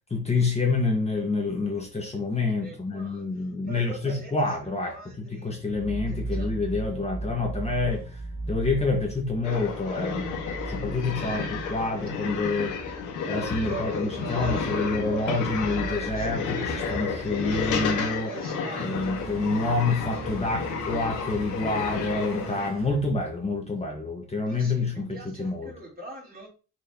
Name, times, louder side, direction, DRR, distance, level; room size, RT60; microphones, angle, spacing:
voice 1, 0.1-8.0 8.5-10.4 10.7-11.4 11.7-12.8 13.3-18.3 18.8-25.7, left 3 dB, 20° left, 1.7 m, -27 dB
voice 2, 2.6-5.5 6.1-6.5 11.2-12.1 13.6-17.0 18.2-19.2 24.5-26.5, right 3 dB, 30° right, 3.6 m, -42 dB
sound 1, 5.7-23.8, right 2 dB, 45° right, 1.5 m, -38 dB
sound 2, 9.4-22.7, left 5 dB, 80° left, 1.8 m, -32 dB
6.6 x 4.8 x 3.0 m
cardioid pair, 90°, 30 cm